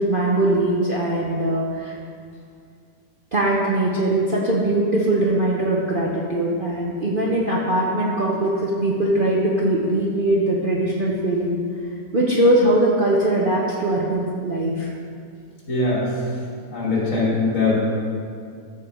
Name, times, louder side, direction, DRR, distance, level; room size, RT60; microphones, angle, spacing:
voice 1, 0.0-1.9 3.3-11.6 12.1-14.9, right 1 dB, 40° right, -4 dB, 0.8 m, -21 dB
voice 2, 15.7-16.0 16.7-17.8, left 3 dB, 50° left, -7 dB, 3.2 m, -21 dB
13.5 x 4.8 x 4.8 m, 2.3 s
omnidirectional pair, 1.8 m